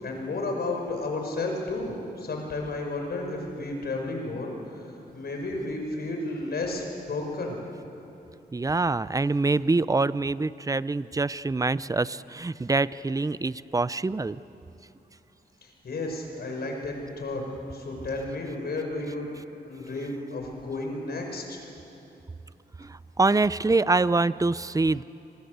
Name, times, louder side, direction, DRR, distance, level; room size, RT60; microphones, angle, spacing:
voice 1, 0.0-7.6 15.6-17.4 17.7-19.3 19.6-21.6, left 2 dB, 65° left, 2 dB, 5.7 m, -32 dB
voice 2, 8.5-14.4 22.8-25.0, right 3 dB, 20° right, 17 dB, 0.6 m, -25 dB
26.5 x 22.5 x 8.2 m, 2.8 s
cardioid pair, 80°, 17 cm